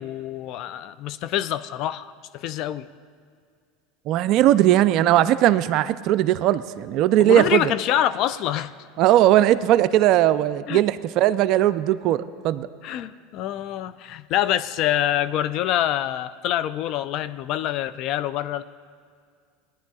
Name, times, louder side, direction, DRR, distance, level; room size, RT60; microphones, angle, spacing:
voice 1, 0.0-2.1 2.3-2.9 7.2-8.7 10.7-10.8 12.8-18.6, left 12 dB, 55° left, 16 dB, 0.4 m, -26 dB
voice 2, 4.1-7.7 9.0-12.7, right 13 dB, 55° right, 14 dB, 0.4 m, -19 dB
19.0 x 10.5 x 2.3 m, 2.1 s
hypercardioid pair, 95°, 0 cm